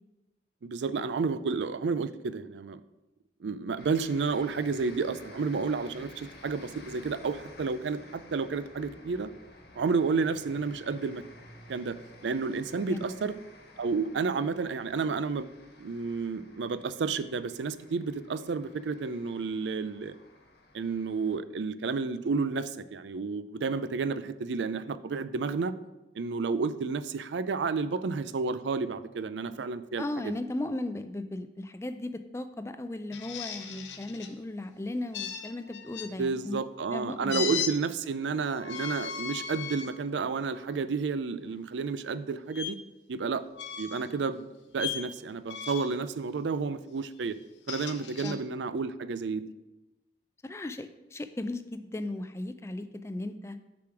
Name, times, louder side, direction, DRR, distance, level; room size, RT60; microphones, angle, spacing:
voice 1, 0.6-2.8 3.4-9.3 9.8-11.2 11.7-12.0 12.2-13.3 13.8-15.5 15.8-20.2 20.7-25.7 26.1-30.3 36.2-42.8 43.1-43.4 43.8-47.4 47.7-49.5, right 4 dB, 90° right, 13 dB, 0.4 m, -31 dB
sound 1, 3.8-21.4, left 2 dB, 65° left, 1.2 m, -53 dB
voice 2, 30.0-36.6 36.9-37.5 48.2-48.4 50.4-53.6, left 2 dB, 15° left, 10 dB, 0.3 m, -36 dB
sound 2, 33.1-34.3 35.1-36.1 37.3-37.7 38.6-39.9 40.5-40.7 42.5-42.7 43.5-44.1 44.8-45.1 45.5-46.0 47.4-48.3, left 7 dB, 90° left, 0.9 m, -36 dB
6.9 x 4.9 x 6.0 m, 1.0 s
head